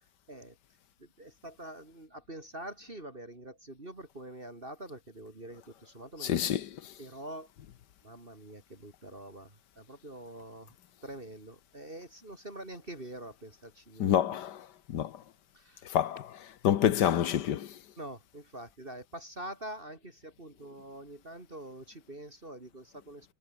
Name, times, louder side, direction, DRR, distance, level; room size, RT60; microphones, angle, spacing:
voice 1, 1.0-6.5 7.0-7.5 8.0-10.7 11.0-14.2 15.5-15.9 18.0-23.3, right 1 dB, 30° right, 4.1 m, -45 dB
voice 2, 6.2-6.9 14.0-15.2 15.8-16.4 16.6-17.8, left 10 dB, 80° left, 1.6 m, -28 dB
omnidirectional pair, 1.8 m